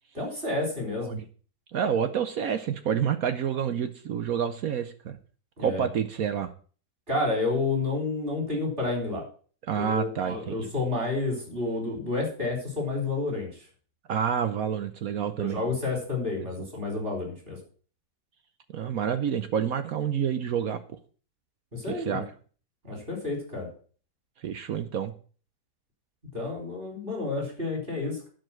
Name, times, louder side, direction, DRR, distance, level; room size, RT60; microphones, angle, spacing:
voice 1, 0.1-1.2 5.6-5.9 7.1-9.2 9.8-13.5 15.4-17.6 21.7-22.2 22.8-23.7 26.3-28.3, left 3 dB, 30° right, 0 dB, 4.5 m, -30 dB
voice 2, 1.7-5.2 5.6-6.5 9.6-10.7 14.1-15.6 16.4-16.5 18.7-21.0 21.9-22.3 24.4-25.1, right 8 dB, 60° right, 10 dB, 1.1 m, -28 dB
11.5 x 5.3 x 7.5 m, 0.42 s
omnidirectional pair, 1.8 m